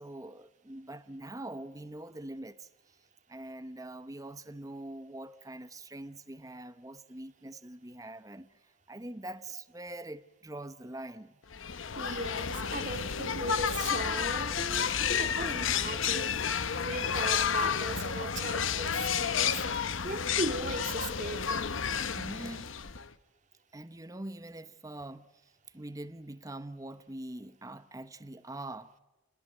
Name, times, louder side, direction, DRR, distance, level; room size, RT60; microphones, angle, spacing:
voice 1, 0.0-2.7 3.3-11.3 22.1-22.7 23.7-28.9, right 1 dB, 15° right, 0.8 m, -43 dB
sound 1, 11.5-23.1, left 7 dB, 75° left, 1.0 m, -31 dB
voice 2, 12.0-16.4 16.8-19.6 20.0-21.6, right 1 dB, 40° right, 2.2 m, -37 dB
29.0 x 21.0 x 7.9 m
head